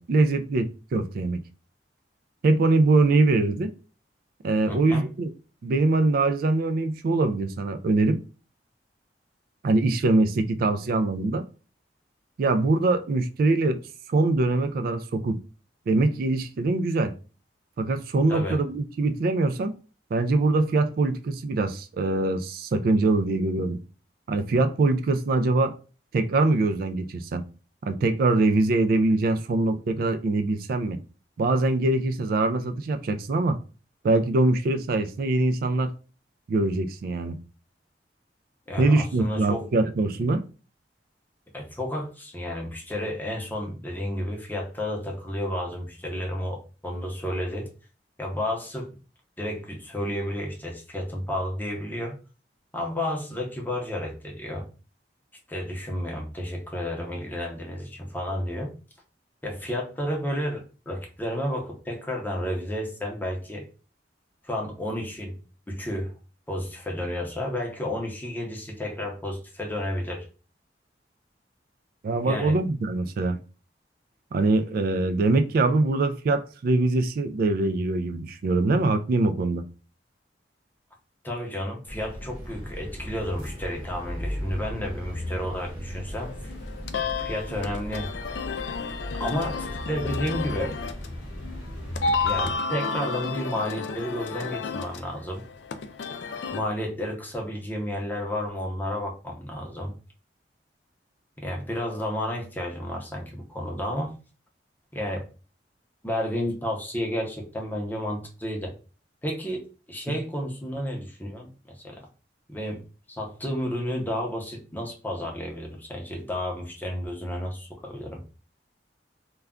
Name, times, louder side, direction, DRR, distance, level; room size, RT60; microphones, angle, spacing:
voice 1, 0.0-1.4 2.4-3.7 4.4-5.3 5.6-8.2 9.6-11.4 12.4-13.8 14.1-15.4 15.9-17.1 17.8-19.7 20.1-23.8 24.3-25.7 26.1-27.4 27.8-31.0 31.4-33.6 34.0-35.9 36.5-37.4 38.8-40.4 72.0-73.4 74.3-79.6 110.1-110.2, right 2 dB, 55° right, 0.3 m, -23 dB
voice 2, 4.7-5.0 18.3-18.6 38.7-39.7 41.5-47.7 48.2-48.9 49.4-52.2 52.7-54.7 55.5-58.7 59.4-63.7 64.4-65.4 65.7-66.1 66.5-70.3 72.2-72.6 81.2-86.5 87.2-88.1 89.2-90.7 92.2-95.4 96.5-100.0 101.4-104.1 104.9-105.2 106.0-108.7 109.2-112.0 112.5-112.8 113.1-118.2, equal, 10° left, 0.7 m, -31 dB
sound 1, 81.9-92.6, equal, 30° right, 0.9 m, -36 dB
sound 2, 86.2-96.6, left 4 dB, 70° left, 0.4 m, -32 dB
2.3 x 2.2 x 3.6 m
head